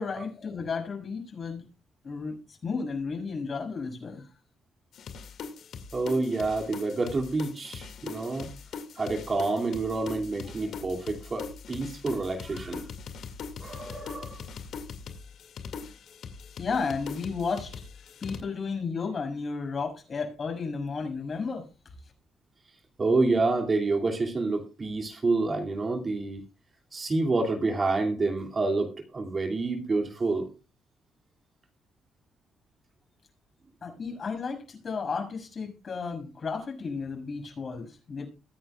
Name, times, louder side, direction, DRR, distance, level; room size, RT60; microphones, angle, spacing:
voice 1, 0.0-1.6 2.0-2.4 2.6-4.2 16.6-17.7 18.2-21.6 33.8-38.3, left 5 dB, 45° left, 6.4 m, -33 dB
sound 1, 4.9-18.4, left 5 dB, 70° left, 2.1 m, -41 dB
voice 2, 5.9-8.5 9.0-12.8 13.6-14.5 23.0-26.4 26.9-30.5, right 3 dB, 35° right, 2.5 m, -28 dB
22.5 x 9.3 x 2.3 m
cardioid pair, 90°, 0 cm